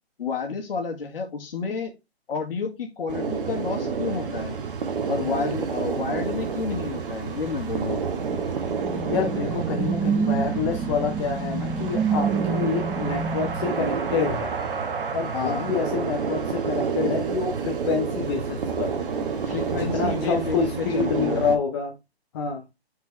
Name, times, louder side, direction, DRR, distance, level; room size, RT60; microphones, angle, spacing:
voice 1, 0.2-1.9 2.3-4.6 5.1-8.0 15.3-15.7 19.4-21.4, left 5 dB, 60° left, 1.8 m, -30 dB
sound 1, 3.1-21.6, right 5 dB, 55° right, 1.3 m, -29 dB
sound 2, 8.0-14.6, right 5 dB, 5° right, 0.9 m, -28 dB
voice 2, 9.1-14.5 15.1-18.9 19.7-22.0 22.3-22.6, left 5 dB, 25° left, 0.7 m, -27 dB
7.3 x 4.6 x 3.1 m
hypercardioid pair, 145°, 33 cm